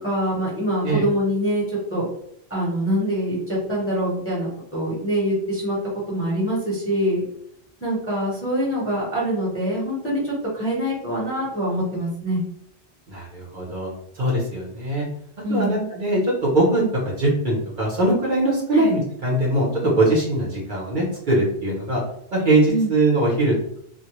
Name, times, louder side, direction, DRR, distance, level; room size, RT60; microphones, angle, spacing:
voice 1, 0.0-2.1 2.5-5.8 6.1-7.2 7.8-12.4 15.4-15.7 18.7-18.9 22.7-22.9, equal, 15° left, -7 dB, 0.7 m, -24 dB
voice 2, 13.1-15.1 15.5-22.0 22.3-23.8, right 1 dB, 55° right, -4 dB, 0.7 m, -21 dB
2.2 x 2.1 x 2.9 m, 0.69 s
omnidirectional pair, 1.1 m